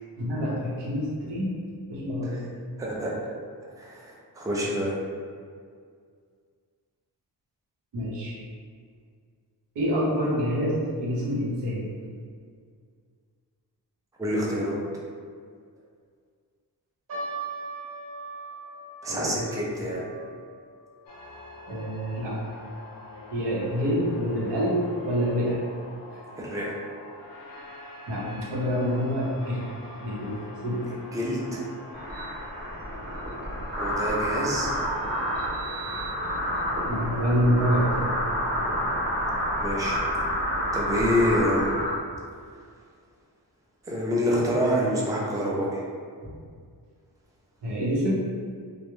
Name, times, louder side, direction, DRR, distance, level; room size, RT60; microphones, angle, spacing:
voice 1, 0.2-1.6 1.9-2.3 7.9-8.4 9.7-11.9 19.1-19.4 21.7-22.6 23.3-25.6 26.1-26.2 28.1-29.6 30.0-30.9 36.9-38.1 46.2-46.3 47.6-48.1, equal, 85° right, -5 dB, 0.7 m, -27 dB
voice 2, 2.8-3.1 3.8-5.0 14.2-14.8 19.0-20.0 26.4-26.7 31.1-31.6 33.8-34.8 39.6-40.0 40.7-41.7 43.8-45.8, equal, 10° right, -4 dB, 0.4 m, -27 dB
sound 1, 17.1-23.6 23.8-23.9 24.7-25.0 25.6-25.7 26.0-26.2, right 3 dB, 60° right, 1.2 m, -41 dB
sound 2, 21.1-35.5, left 2 dB, 55° left, 0.5 m, -45 dB
sound 3, 31.9-41.9, equal, 25° right, 0.9 m, -29 dB
2.2 x 2.0 x 2.9 m, 2.1 s
cardioid pair, 80°, 41 cm